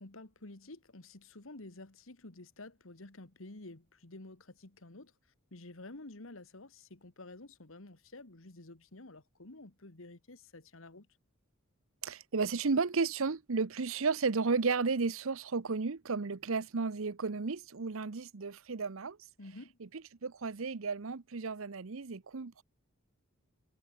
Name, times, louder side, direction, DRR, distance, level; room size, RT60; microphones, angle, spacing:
voice 1, 0.0-5.1 5.5-11.1 19.4-19.7, left 2 dB, 70° left, 1.8 m, -50 dB
voice 2, 12.0-19.2 19.8-22.6, right 4 dB, 70° right, 0.8 m, -33 dB
head